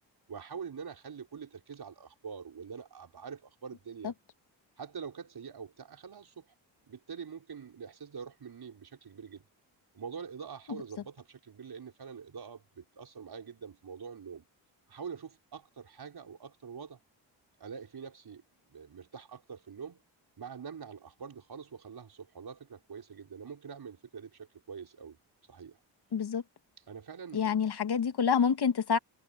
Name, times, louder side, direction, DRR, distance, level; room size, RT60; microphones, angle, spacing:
voice 1, 0.3-4.1 4.8-6.5 6.9-9.4 9.9-14.4 14.9-17.0 17.6-18.4 18.7-20.0 20.4-25.2 25.5-25.8 26.8-27.6, right 6 dB, 50° right, 5.7 m, -45 dB
voice 2, 26.1-26.4 27.3-29.0, left 6 dB, 50° left, 2.4 m, -27 dB
supercardioid pair, 60°, 48 cm